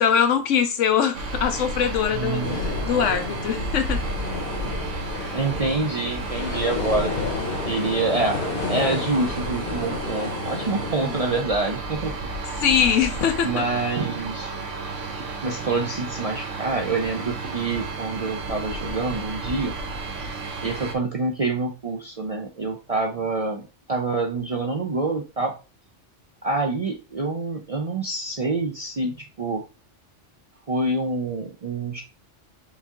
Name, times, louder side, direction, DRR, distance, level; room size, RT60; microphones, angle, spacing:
voice 1, 0.0-4.0 5.3-5.4 11.0-11.1 12.6-13.5, left 8 dB, 85° left, 1.1 m, -22 dB
sound 1, 1.1-20.9, right 2 dB, 80° right, 1.2 m, -32 dB
voice 2, 2.1-3.1 3.5-3.7 5.3-7.1 7.7-8.4 8.7-12.2 13.4-14.5 15.4-19.8 20.6-25.5 26.4-29.6 30.7-32.0, right 3 dB, 45° right, 0.5 m, -26 dB
sound 2, 2.4-11.4, left 4 dB, 55° left, 1.1 m, -31 dB
5.0 x 2.7 x 3.6 m
omnidirectional pair, 1.3 m